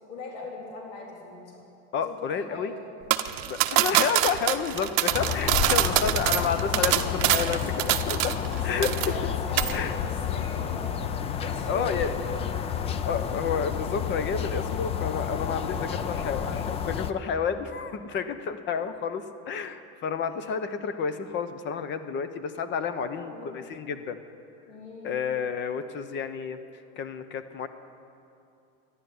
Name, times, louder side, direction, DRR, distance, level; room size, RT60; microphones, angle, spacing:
voice 1, 0.1-1.5 2.0-2.7 5.5-5.9 7.1-7.6 8.4-11.1 11.4-12.4 22.9-23.6 24.7-25.2, left 3 dB, 70° left, -3 dB, 3.8 m, -40 dB
voice 2, 1.9-2.7 3.5-7.6 7.9-8.4 8.6-9.1 9.7-10.0 11.7-12.1 13.1-24.2 25.0-26.6 27.0-27.7, left 6 dB, 35° left, 11 dB, 0.8 m, -30 dB
sound 1, 3.1-8.5 8.8-9.3 9.6-9.8, right 15 dB, 50° right, 0.7 m, -25 dB
sound 2, 5.1-17.1, left 8 dB, 20° left, 0.4 m, -30 dB
12.5 x 11.0 x 9.4 m, 2.7 s
cardioid pair, 155°, 33 cm